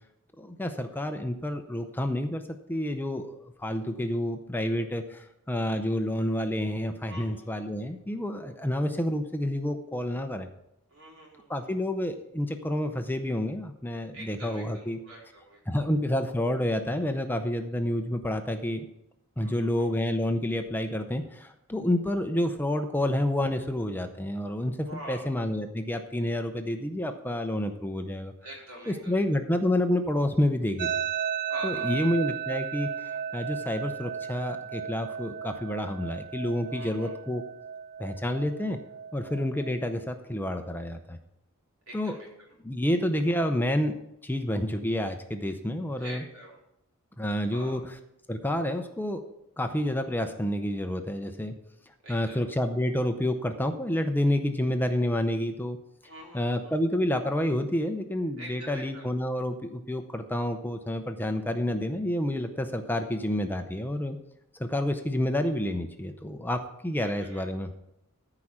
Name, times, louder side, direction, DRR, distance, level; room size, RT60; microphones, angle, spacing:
voice 1, 0.4-2.4 2.7-10.5 11.5-15.0 15.7-18.9 19.4-28.3 28.9-30.9 31.6-37.4 38.0-38.8 39.1-41.2 41.9-42.2 42.6-43.9 44.2-46.2 47.2-47.9 48.3-49.2 49.6-51.5 52.1-55.8 56.3-64.2 64.6-67.7, left 1 dB, 10° left, 7 dB, 0.6 m, -29 dB
voice 2, 7.1-7.5 10.9-11.7 14.1-15.8 19.4-19.9 24.8-25.3 28.4-29.2 31.5-32.2 36.7-37.1 41.9-42.5 45.9-46.6 47.5-47.8 52.0-52.5 56.0-56.8 58.4-59.1 67.0-67.4, right 1 dB, 70° right, -3 dB, 4.0 m, -45 dB
sound 1, 30.8-39.8, right 8 dB, 40° right, 0.3 m, -35 dB
14.0 x 4.9 x 5.9 m, 0.80 s
head